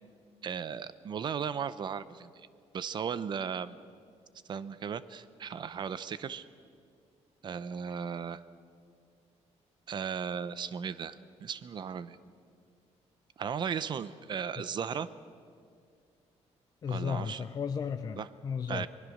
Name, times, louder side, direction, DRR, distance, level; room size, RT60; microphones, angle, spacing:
voice 1, 0.4-2.5 2.7-3.8 4.5-6.5 7.4-8.4 9.9-12.2 13.4-15.1 16.9-17.5 18.2-18.3 18.7-18.9, right 7 dB, 40° right, 15 dB, 0.7 m, -36 dB
voice 2, 16.8-18.9, left 6 dB, 35° left, 8 dB, 0.6 m, -34 dB
24.5 x 21.5 x 6.5 m, 2.3 s
wide cardioid pair, 175°, 12 cm